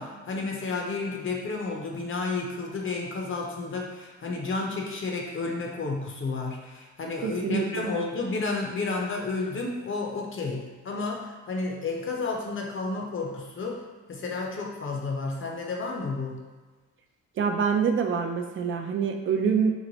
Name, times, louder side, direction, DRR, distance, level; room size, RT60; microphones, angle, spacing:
voice 1, 0.0-13.8 14.1-16.3, left 3 dB, 45° left, 0 dB, 0.6 m, -31 dB
voice 2, 7.2-8.0 17.4-19.7, right 6 dB, 40° right, 4 dB, 0.5 m, -26 dB
3.0 x 2.1 x 3.9 m, 1.3 s
cardioid pair, 90°, 30 cm